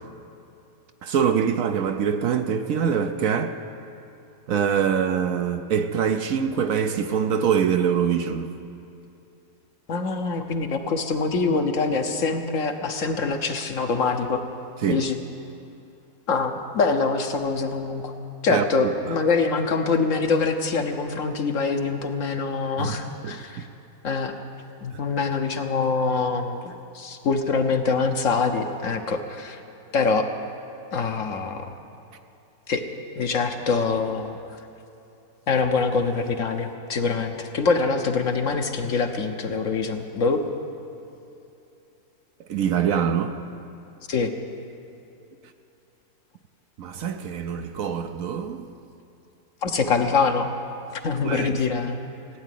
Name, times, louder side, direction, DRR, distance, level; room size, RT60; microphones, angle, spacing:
voice 1, 1.0-3.5 4.5-8.5 14.8-15.0 18.5-18.6 19.1-19.2 22.8-22.9 23.2-23.7 24.9-25.0 42.5-43.4 46.8-48.6 51.2-51.6, right 7 dB, 65° right, 1.0 m, -24 dB
voice 2, 9.9-14.4 14.9-15.2 16.3-18.1 18.4-23.7 24.0-24.3 24.8-29.6 29.9-30.3 30.9-31.7 32.7-32.8 33.2-34.4 35.5-40.4 44.1-44.3 49.6-50.5 51.0-52.0, left 4 dB, 55° left, 1.2 m, -24 dB
16.5 x 9.3 x 9.2 m
omnidirectional pair, 1.7 m